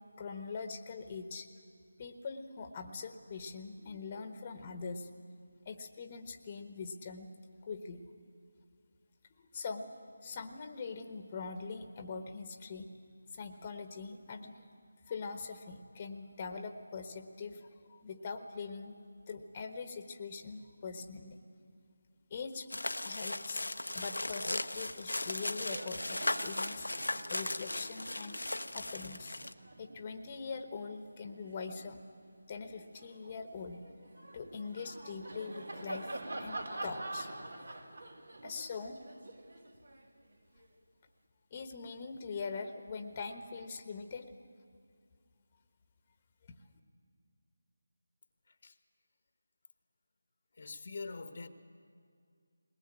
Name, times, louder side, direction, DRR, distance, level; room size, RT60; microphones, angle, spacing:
voice 1, 0.2-1.5 2.0-5.1 5.6-7.3 7.6-8.1 9.5-12.9 13.3-14.7 15.1-19.0 19.3-21.4 22.3-22.7 23.0-23.6 23.9-26.9 27.3-28.4 28.7-29.4 29.8-32.0 32.5-33.8 34.2-37.3 38.4-39.0 41.5-44.3 46.5-46.6, left 4 dB, 30° left, 7 dB, 1.2 m, -43 dB
sound 1, 22.7-29.5, left 2 dB, 80° left, 0.9 m, -37 dB
Laughter, 24.8-25.0 25.3-32.0 32.5-40.7, right 2 dB, 65° right, 2.3 m, -47 dB
voice 2, 48.5-48.8 50.5-51.5, left 3 dB, 50° left, 10 dB, 1.2 m, -44 dB
20.5 x 19.5 x 8.8 m, 2.2 s
figure-of-eight pair, 160°, 0 cm